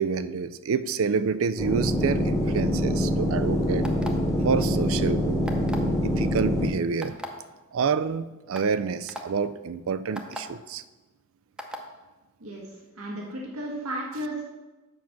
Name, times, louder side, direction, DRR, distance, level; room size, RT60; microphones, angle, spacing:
voice 1, 0.0-3.9 4.4-5.5 6.0-7.1 7.7-10.8, right 5 dB, 70° right, 14 dB, 0.4 m, -28 dB
sound 1, 1.6-6.7, equal, 15° left, 1.1 m, -25 dB
sound 2, 3.8-4.3 5.5-5.9 7.0-7.3 8.0-8.1 8.5-8.7 9.1-9.2 10.2-10.4 11.6-11.8, equal, 5° right, 0.7 m, -36 dB
voice 2, 13.0-14.4, right 1 dB, 90° right, -2 dB, 1.6 m, -33 dB
7.3 x 6.1 x 5.8 m, 1.2 s
head